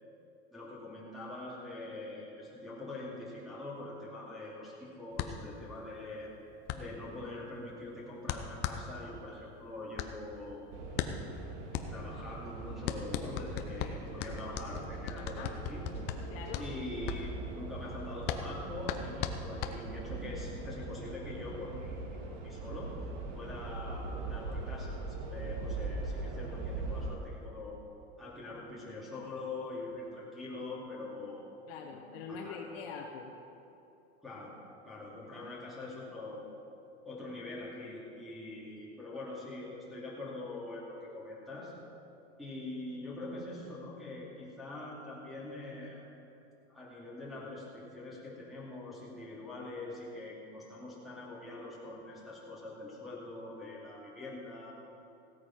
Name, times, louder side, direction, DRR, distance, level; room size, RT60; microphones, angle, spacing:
voice 1, 0.5-6.3 6.7-10.6 11.9-15.8 16.6-22.0 22.3-23.0 23.3-27.8 28.2-31.5 32.3-32.6 34.2-34.5 34.8-36.6 37.0-41.8 42.4-46.0 46.7-54.7, left 2 dB, ahead, -8 dB, 2.4 m, -44 dB
sound 1, 5.1-20.3, left 9 dB, 30° left, 0.7 m, -39 dB
sound 2, 10.7-27.2, right 3 dB, 50° right, 1.8 m, -41 dB
voice 2, 15.2-15.5 16.3-16.7 31.7-33.3, left 5 dB, 55° left, 1 dB, 1.4 m, -43 dB
16.5 x 8.6 x 5.8 m, 2.8 s
supercardioid pair, 160°, 34 cm